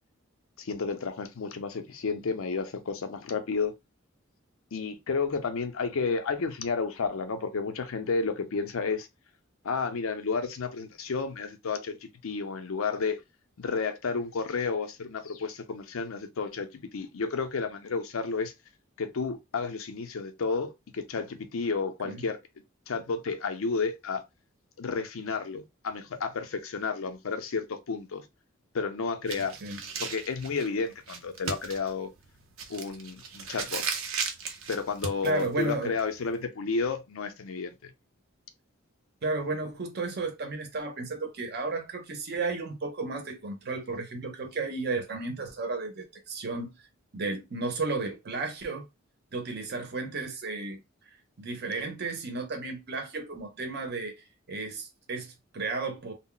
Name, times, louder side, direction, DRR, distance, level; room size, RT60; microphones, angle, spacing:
voice 1, 0.6-3.7 4.7-9.1 9.6-13.2 13.6-18.5 19.0-22.4 22.9-24.2 24.8-28.2 28.7-29.6 30.0-32.1 32.7-33.8 34.7-37.9, left 4 dB, 90° left, 0.5 m, -31 dB
sound 1, 29.3-36.4, right 5 dB, 85° right, 0.6 m, -36 dB
voice 2, 35.2-35.9 39.2-46.7 47.1-48.9 49.3-50.8 51.4-56.1, right 3 dB, 55° right, 0.8 m, -33 dB
2.2 x 2.0 x 3.7 m
head